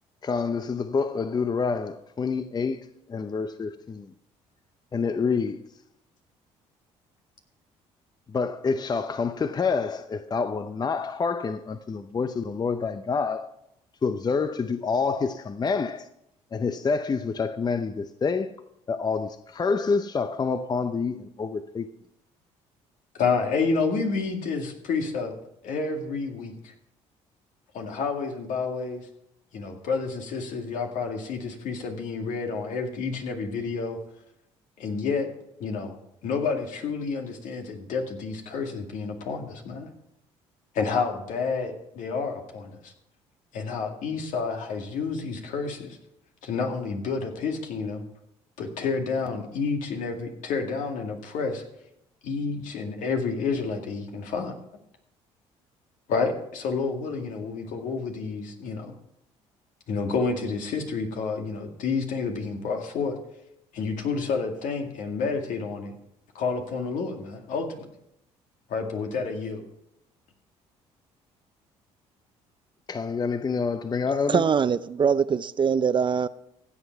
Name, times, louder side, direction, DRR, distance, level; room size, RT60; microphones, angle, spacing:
voice 1, 0.2-4.1 4.9-5.6 8.3-13.5 14.0-16.1 16.5-18.5 18.9-21.9 72.9-74.4, left 5 dB, 30° left, 0.7 m, -27 dB
voice 2, 23.1-25.3 25.6-26.7 27.7-29.1 29.5-34.0 34.8-35.3 35.6-36.0 36.2-39.9 40.7-42.9 43.5-46.0 46.4-48.0 48.6-51.6 52.2-54.5 56.1-58.9 59.9-63.2 63.7-65.9 66.3-67.9 68.7-69.6, left 4 dB, 70° left, 2.2 m, -29 dB
voice 3, 74.3-76.3, right 6 dB, 35° right, 0.5 m, -23 dB
15.5 x 7.9 x 4.6 m
supercardioid pair, 70°, 14 cm